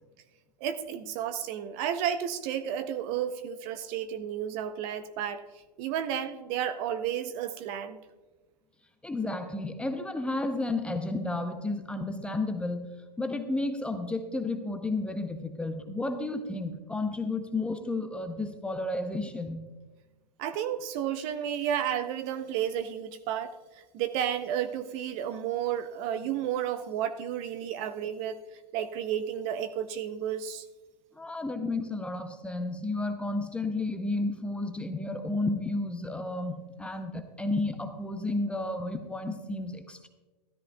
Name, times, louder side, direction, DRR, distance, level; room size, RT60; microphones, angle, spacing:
voice 1, 0.6-5.5 5.8-8.0 20.4-23.6 23.9-28.4 28.7-30.6, right 9 dB, 35° right, 10 dB, 0.6 m, -32 dB
voice 2, 9.0-12.9 13.2-19.7 31.1-40.1, left 2 dB, 5° left, 7 dB, 0.6 m, -32 dB
13.5 x 13.0 x 2.2 m, 1.2 s
hypercardioid pair, 115°, 21 cm